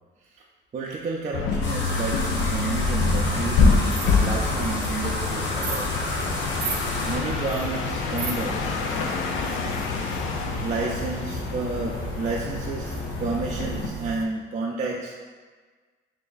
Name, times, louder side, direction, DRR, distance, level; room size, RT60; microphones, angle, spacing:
voice 1, 0.7-5.9 7.1-8.8 10.6-15.1, right 3 dB, 35° right, -3 dB, 0.4 m, -31 dB
sound 1, 1.3-13.9, left 4 dB, 85° left, 0.5 m, -26 dB
sound 2, 1.6-7.2, left 1 dB, 65° left, 0.9 m, -31 dB
sound 3, 3.6-14.3, right 6 dB, 85° right, 0.5 m, -38 dB
3.3 x 2.7 x 3.9 m, 1.4 s
cardioid pair, 90°, 20 cm